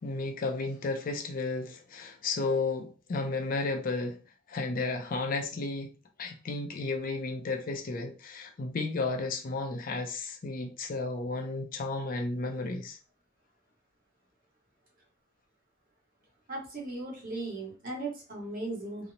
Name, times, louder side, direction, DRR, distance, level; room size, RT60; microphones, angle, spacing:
voice 1, 0.0-4.2 4.5-5.9 6.2-13.0, left 3 dB, 50° left, 0.4 m, -33 dB
voice 2, 16.5-19.1, right 2 dB, 50° right, 1.2 m, -37 dB
2.9 x 2.0 x 2.6 m
head